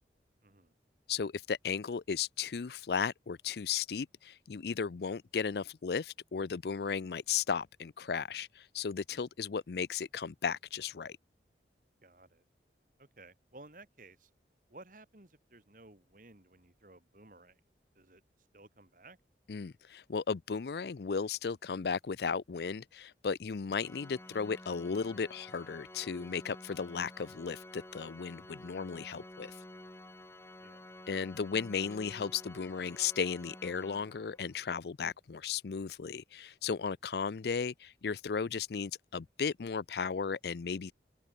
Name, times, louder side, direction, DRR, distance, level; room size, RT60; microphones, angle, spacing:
voice 1, 0.4-0.7 12.0-12.4 13.0-14.3 14.7-17.6 17.9-18.2 18.5-19.2 30.6-30.9, right 2 dB, 50° right, 2.7 m, -56 dB
voice 2, 1.1-11.2 19.5-29.6 31.1-40.9, left 6 dB, 65° left, 0.5 m, -35 dB
Organ, 23.8-34.6, left 1 dB, 15° left, 1.5 m, -51 dB
open air
head